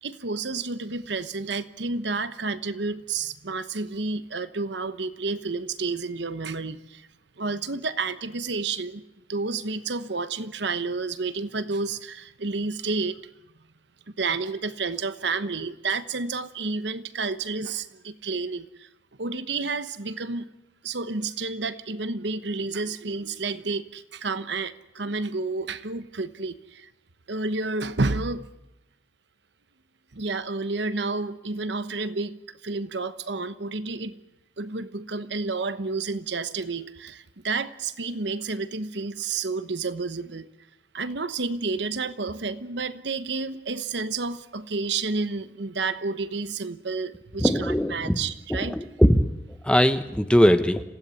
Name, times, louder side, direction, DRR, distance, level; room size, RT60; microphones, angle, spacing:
voice 1, 0.0-7.1 7.4-9.0 9.3-13.2 14.2-18.9 19.2-20.5 20.8-26.9 27.3-28.5 30.1-34.2 34.6-40.5 40.9-48.7, right 3 dB, 65° right, 1.0 m, -30 dB
voice 2, 47.4-48.2 48.5-50.8, equal, 5° left, 1.1 m, -21 dB
27.0 x 16.5 x 9.7 m
head